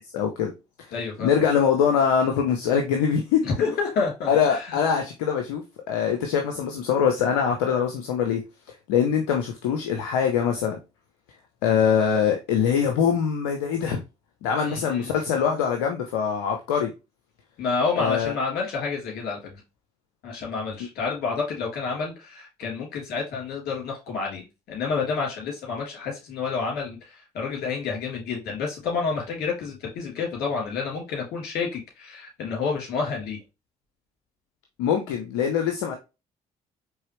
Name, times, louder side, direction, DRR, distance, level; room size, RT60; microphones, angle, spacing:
voice 1, 0.1-0.5 0.8-0.9 1.2-3.4 4.3-8.4 8.9-10.8 11.6-14.0 14.4-16.9 18.0-18.3 34.8-35.9, left 7 dB, 90° left, 0.6 m, -23 dB
voice 2, 0.9-1.3 3.4-4.8 14.6-15.1 17.6-19.6 20.2-33.4, left 5 dB, 70° left, 2.9 m, -29 dB
4.7 x 3.3 x 3.0 m
hypercardioid pair, 55°, 17 cm